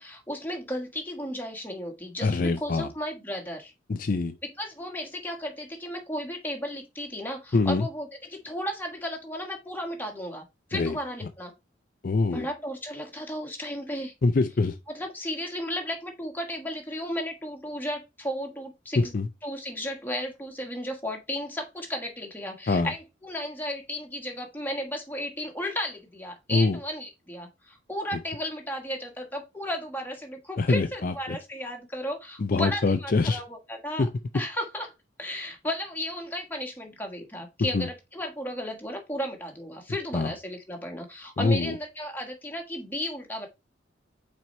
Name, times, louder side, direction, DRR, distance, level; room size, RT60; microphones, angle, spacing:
voice 1, 0.0-3.7 4.4-10.4 10.7-11.5 12.3-14.1 14.9-19.1 19.4-34.1 34.3-34.9 35.2-43.5, equal, 10° left, 1.4 m, -34 dB
voice 2, 2.2-2.9 3.9-4.3 7.5-7.9 10.7-11.0 12.0-12.5 14.2-14.8 19.0-19.3 22.7-22.9 26.5-26.8 30.6-31.4 32.4-33.4 34.0-34.1 37.6-37.9 40.1-40.3 41.4-41.8, left 3 dB, 45° left, 0.4 m, -24 dB
6.0 x 4.3 x 4.2 m
head